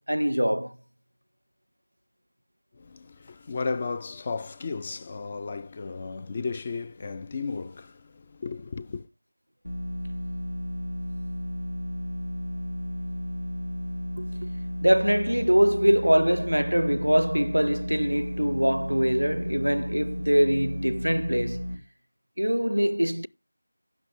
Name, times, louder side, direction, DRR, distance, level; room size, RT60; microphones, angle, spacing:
voice 1, 0.1-0.8 14.2-14.5 14.8-21.6 22.4-23.3, equal, 90° right, 0.5 m, -23 dB
voice 2, 2.7-9.1, left 4 dB, 20° left, 0.5 m, -34 dB
sound 1, 9.6-21.7, equal, 85° left, 3.4 m, -33 dB
15.5 x 6.3 x 3.3 m
figure-of-eight pair, 170°, 0 cm